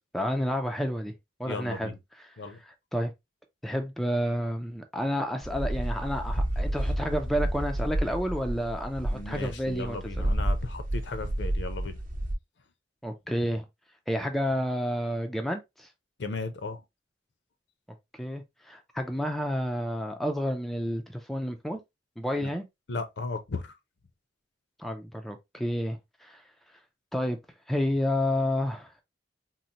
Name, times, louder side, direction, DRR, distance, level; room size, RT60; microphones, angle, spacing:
voice 1, 0.1-1.1 1.4-1.9 2.2-3.1 3.6-10.3 13.0-13.6 14.1-15.9 18.1-21.8 22.2-22.6 24.8-26.4 27.1-27.4 27.7-29.0, equal, ahead, 0.3 m, -30 dB
voice 2, 1.5-2.0 2.4-2.6 9.1-12.0 16.2-16.8 22.4-22.5 22.9-23.8, left 3 dB, 70° left, 0.6 m, -36 dB
sound 1, 5.4-12.4, right 1 dB, 45° right, 0.8 m, -30 dB
3.9 x 2.1 x 2.8 m
head